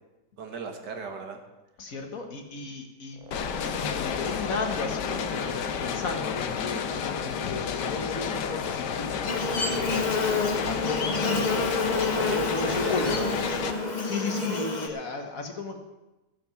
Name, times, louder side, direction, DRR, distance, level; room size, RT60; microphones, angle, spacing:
voice 1, 0.4-1.4 9.5-10.0 12.1-14.6, right 5 dB, 85° right, 4 dB, 2.2 m, -38 dB
voice 2, 1.8-3.3 3.6-10.0 10.6-13.3 14.0-15.8, left 3 dB, 55° left, 4 dB, 1.9 m, -35 dB
sound 1, 3.1-8.0 8.2-8.4 9.0-13.7, right 2 dB, 60° right, 1.7 m, -45 dB
sound 2, 3.3-13.7, left 7 dB, 85° left, 1.5 m, -31 dB
Buzz, 9.3-14.9, left 3 dB, 30° left, 1.1 m, -28 dB
15.5 x 7.3 x 7.1 m, 1.0 s
omnidirectional pair, 1.8 m